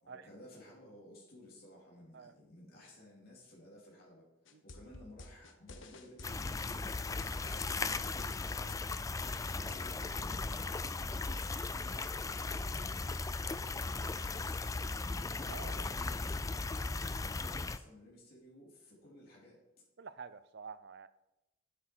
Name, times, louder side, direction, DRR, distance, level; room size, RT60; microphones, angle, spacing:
voice 1, 0.0-8.3 9.5-12.7 13.7-14.7 15.4-19.7, left 1 dB, 50° left, -4 dB, 2.9 m, -56 dB
sound 1, 4.5-9.8, left 2 dB, 65° left, 1.0 m, -51 dB
sound 2, 6.2-17.8, left 3 dB, 15° left, 0.3 m, -37 dB
voice 2, 15.5-15.9 16.7-16.8 20.0-21.1, right 5 dB, 55° right, 14 dB, 0.5 m, -49 dB
9.8 x 8.5 x 4.4 m, 0.91 s
head